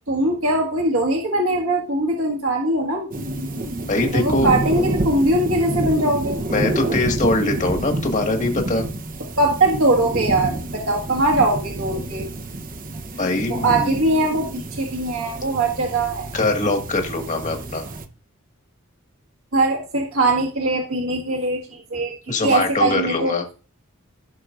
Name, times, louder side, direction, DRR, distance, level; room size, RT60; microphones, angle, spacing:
voice 1, 0.1-3.1 4.1-6.4 9.4-12.2 13.5-16.3 19.5-22.1 22.4-23.3, right 2 dB, 70° right, 0 dB, 1.7 m, -21 dB
sound 1, 3.1-18.1, right 2 dB, 40° right, 0.8 m, -28 dB
voice 2, 3.9-4.5 6.5-8.8 13.2-14.0 16.3-17.8 22.3-23.4, left 2 dB, 35° left, 4 dB, 1.8 m, -22 dB
16.0 x 6.2 x 2.5 m, 0.36 s
head